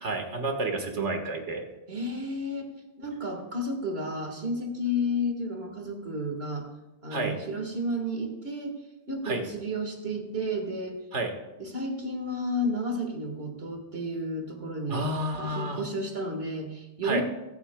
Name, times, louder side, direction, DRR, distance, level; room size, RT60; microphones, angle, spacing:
voice 1, 0.0-1.7 7.1-7.4 9.2-9.4 11.1-11.3 14.9-15.8 17.0-17.2, right 2 dB, 90° right, 4 dB, 1.9 m, -30 dB
voice 2, 1.9-2.7 3.0-6.7 7.0-8.7 9.1-11.0 11.6-17.2, equal, 60° right, 3 dB, 1.9 m, -32 dB
22.0 x 8.4 x 2.3 m, 1.0 s
omnidirectional pair, 1.2 m